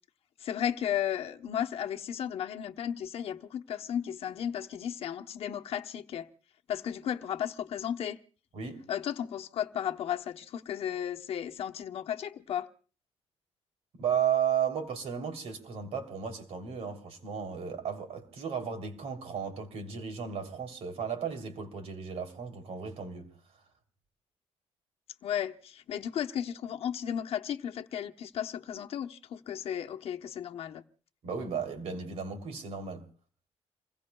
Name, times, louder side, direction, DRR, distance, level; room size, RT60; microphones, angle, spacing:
voice 1, 0.4-6.3 6.7-8.2 8.9-12.7 25.2-30.8, left 9 dB, 60° left, 0.9 m, -34 dB
voice 2, 8.5-8.9 13.9-23.3 31.2-33.1, right 7 dB, 70° right, 3.2 m, -34 dB
28.0 x 21.5 x 2.3 m
wide cardioid pair, 180°, 11 cm